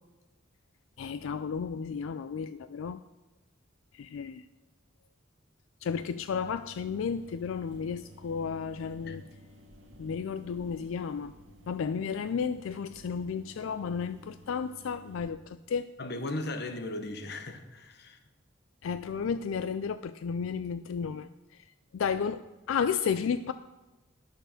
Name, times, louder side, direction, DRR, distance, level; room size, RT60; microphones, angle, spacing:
voice 1, 1.0-3.0 4.0-4.4 5.8-9.2 10.0-11.3 11.7-15.9 18.8-21.3 21.9-22.4 22.7-23.5, left 6 dB, 85° left, 0.3 m, -32 dB
sound 1, 6.3-15.3, equal, 65° right, 1.8 m, -54 dB
voice 2, 16.0-18.2, left 2 dB, 55° left, 1.0 m, -37 dB
10.5 x 6.5 x 6.4 m
head